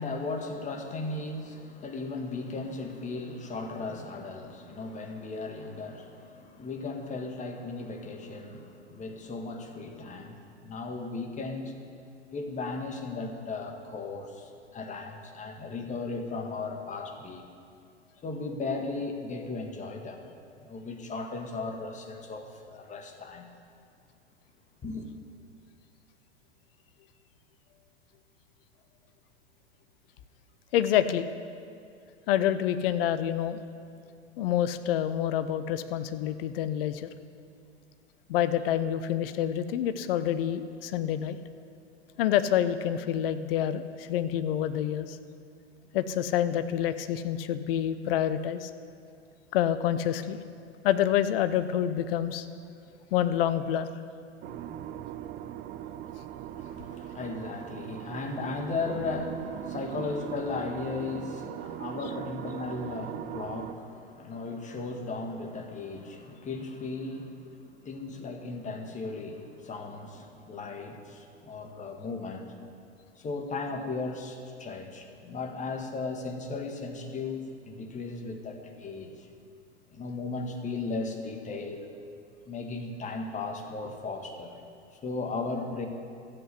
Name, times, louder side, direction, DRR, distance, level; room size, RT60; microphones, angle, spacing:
voice 1, 0.0-11.7 12.3-17.5 18.2-20.2 20.6-23.5 24.8-25.1 56.5-72.5 73.1-79.3 79.9-81.9 82.5-84.6 84.9-85.9, left 3 dB, 20° left, 4 dB, 1.6 m, -36 dB
voice 2, 30.7-31.3 32.3-33.6 34.4-37.1 38.3-41.4 42.2-45.2 45.9-48.7 49.5-50.4 50.8-52.4 53.1-53.9, left 10 dB, 55° left, 12 dB, 0.8 m, -27 dB
sound 1, 54.4-63.8, right 11 dB, 25° right, 0.5 m, -40 dB
13.5 x 7.9 x 8.3 m, 2.4 s
figure-of-eight pair, 95°, 34 cm